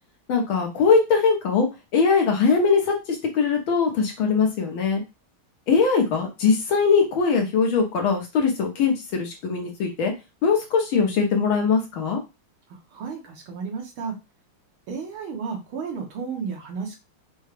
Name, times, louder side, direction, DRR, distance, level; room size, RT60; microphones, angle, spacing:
voice 1, 0.3-1.7 1.9-5.0 5.7-10.1 10.4-12.2, left 5 dB, 70° left, 2 dB, 1.8 m, -21 dB
voice 2, 12.7-14.2 14.9-17.0, right 5 dB, 75° right, 1 dB, 2.0 m, -33 dB
5.3 x 2.3 x 3.3 m, 0.26 s
omnidirectional pair, 2.4 m